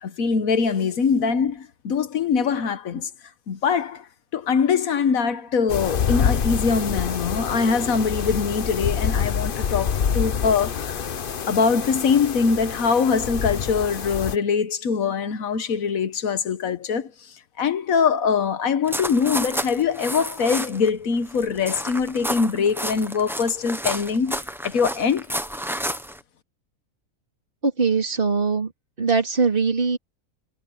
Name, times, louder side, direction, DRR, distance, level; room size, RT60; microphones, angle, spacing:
voice 1, 0.0-3.1 3.5-4.1 4.3-11.0 11.5-17.1 17.6-24.4 24.6-25.3, left 5 dB, 70° left, 1.5 m, -23 dB
sound 1, 5.7-14.4, left 7 dB, 45° left, 0.9 m, -26 dB
sound 2, 18.9-20.9 21.2-26.2, equal, ahead, 0.7 m, -30 dB
voice 2, 27.6-28.7 29.0-30.0, right 4 dB, 35° right, 3.6 m, -21 dB
omnidirectional pair, 1.5 m